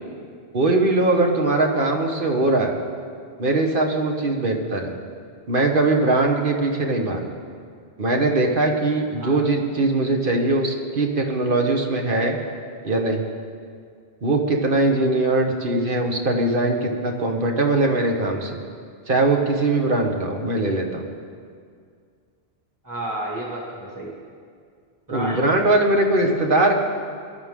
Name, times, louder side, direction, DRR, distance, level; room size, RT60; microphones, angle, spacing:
voice 1, 0.5-2.7 3.4-4.9 5.5-7.3 8.0-12.4 12.8-13.2 14.2-18.6 19.1-21.0 25.1-26.7, right 2 dB, 50° right, 2 dB, 1.6 m, -21 dB
voice 2, 22.8-24.1 25.1-25.5 26.2-26.3, right 1 dB, 15° right, -4 dB, 2.4 m, -31 dB
22.0 x 11.5 x 3.7 m, 2.2 s
omnidirectional pair, 1.1 m